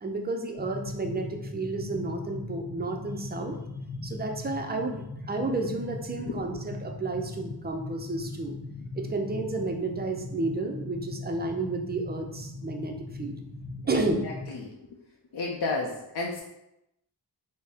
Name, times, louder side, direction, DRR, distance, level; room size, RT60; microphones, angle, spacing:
voice 1, 0.0-3.6 4.0-8.6 8.9-13.4 13.9-14.2, right 2 dB, 25° right, 3 dB, 0.4 m, -31 dB
sound 1, 0.5-14.4, left 2 dB, 10° left, 1.2 m, -39 dB
voice 2, 13.9-14.8 15.3-16.4, left 3 dB, 65° left, -1 dB, 0.6 m, -33 dB
4.0 x 2.1 x 3.5 m, 0.86 s
wide cardioid pair, 105°, 44 cm